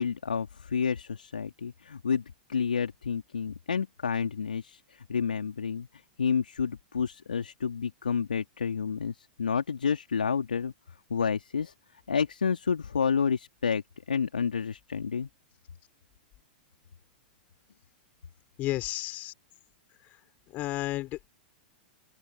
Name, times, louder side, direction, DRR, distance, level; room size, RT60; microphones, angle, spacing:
voice 1, 0.0-2.2 2.5-5.9 6.2-10.7 11.1-11.7 12.1-13.8 14.1-15.3, left 6 dB, 75° left, 3.6 m, -29 dB
voice 2, 18.6-19.3 20.5-21.4, left 17 dB, 35° left, 3.6 m, -32 dB
open air
figure-of-eight pair, 100°, 5 cm